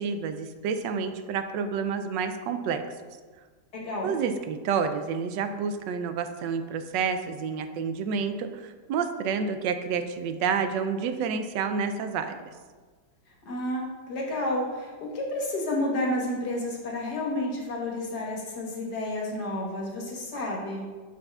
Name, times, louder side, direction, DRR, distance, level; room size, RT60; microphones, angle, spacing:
voice 1, 0.0-2.8 4.0-12.5, right 6 dB, 85° right, 8 dB, 1.2 m, -29 dB
voice 2, 3.7-4.1 13.5-20.9, left 1 dB, 65° left, -2 dB, 1.9 m, -30 dB
8.8 x 6.2 x 2.4 m, 1.4 s
omnidirectional pair, 1.9 m